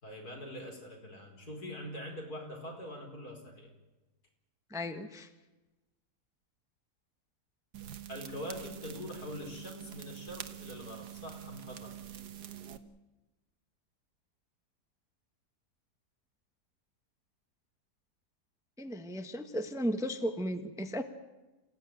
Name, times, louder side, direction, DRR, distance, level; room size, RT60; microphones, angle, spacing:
voice 1, 0.0-3.7 8.1-12.0, left 1 dB, 70° left, 2 dB, 5.3 m, -43 dB
voice 2, 4.7-5.3 18.8-21.0, equal, ahead, 7 dB, 1.1 m, -35 dB
sound 1, 7.7-12.8, right 10 dB, 75° right, 1.7 m, -46 dB
27.5 x 16.5 x 9.1 m, 1.1 s
omnidirectional pair, 1.7 m